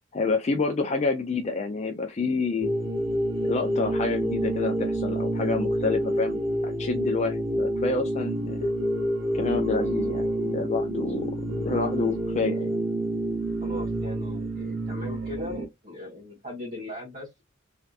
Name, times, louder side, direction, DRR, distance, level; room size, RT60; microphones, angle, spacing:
voice 1, 0.1-2.7 3.4-8.7 9.3-11.3 11.6-12.7, left 4 dB, 35° left, 0.4 m, -28 dB
sound 1, 2.6-15.6, right 1 dB, 65° right, 1.1 m, -28 dB
voice 2, 13.6-17.4, left 1 dB, 40° right, 1.4 m, -39 dB
3.3 x 2.7 x 2.4 m
head